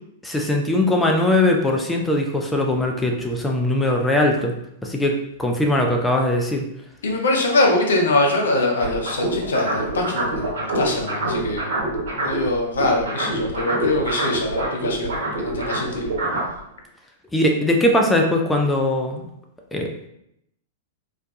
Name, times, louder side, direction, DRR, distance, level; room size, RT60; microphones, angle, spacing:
voice 1, 0.2-4.5 4.8-6.7 17.3-19.2 19.7-20.1, left 1 dB, 10° left, 2 dB, 0.4 m, -20 dB
voice 2, 7.0-11.7 12.2-16.1, left 2 dB, 65° left, 0 dB, 0.5 m, -23 dB
sound 1, 8.8-12.5 12.7-16.5, right 2 dB, 55° right, 1.1 m, -26 dB
2.4 x 2.2 x 2.6 m, 0.78 s
figure-of-eight pair, 100°, 0 cm